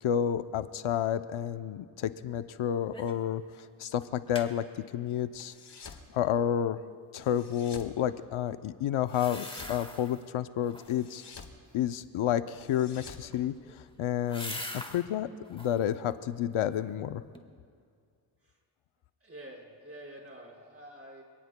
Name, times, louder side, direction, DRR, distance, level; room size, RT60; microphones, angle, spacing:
voice 1, 0.0-3.4 3.8-5.5 6.1-6.8 7.1-11.2 11.7-13.5 14.0-14.6 14.9-17.2, left 10 dB, 80° left, 12 dB, 0.6 m, -30 dB
sound 1, 2.9-3.3 3.6-3.7 4.0-4.5 9.0-10.2 10.6-11.1 13.1-15.0 15.4-15.9 16.4-17.0 17.3-17.4, left 1 dB, 10° left, 1.5 m, -43 dB
sound 2, 5.3-6.1 7.2-7.9 9.1-9.8 10.8-11.6 12.5-14.1, left 5 dB, 55° left, 1.5 m, -49 dB
voice 2, 19.2-21.2, right 1 dB, 30° right, -2 dB, 4.9 m, -48 dB
27.0 x 18.0 x 2.2 m, 2.1 s
cardioid pair, 60°, 49 cm